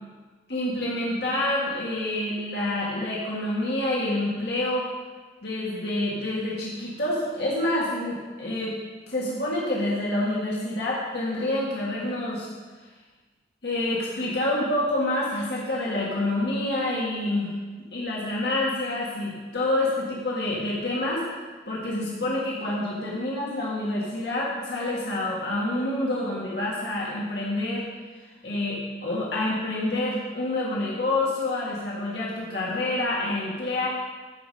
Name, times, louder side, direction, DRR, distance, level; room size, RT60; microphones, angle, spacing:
voice 1, 0.5-4.9 5.4-8.8 9.1-12.5 13.6-17.5 17.9-21.2 21.7-27.9 28.4-33.9, left 1 dB, 70° left, -5 dB, 1.8 m, -27 dB
14.0 x 5.0 x 5.2 m, 1.4 s
head